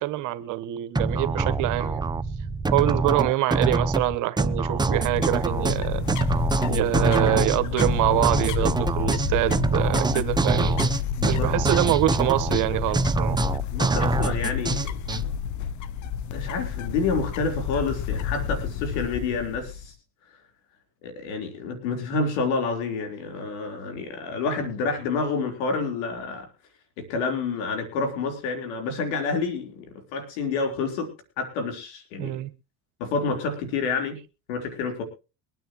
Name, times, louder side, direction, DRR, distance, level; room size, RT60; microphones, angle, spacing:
voice 1, 0.0-2.0 2.7-6.0 6.7-10.8 11.3-13.4 32.2-32.5, right 15 dB, 60° right, 1.2 m, -25 dB
sound 1, 0.9-15.2, right 3 dB, 10° right, 0.7 m, -25 dB
sound 2, 4.7-19.9, left 8 dB, 55° left, 1.0 m, -30 dB
voice 2, 13.7-14.9 16.3-19.9 21.0-26.5 27.0-29.9 30.1-31.1 31.4-32.4 33.0-34.2 34.5-35.0, left 4 dB, 80° left, 4.0 m, -28 dB
23.0 x 9.3 x 3.0 m
supercardioid pair, 95°, 35 cm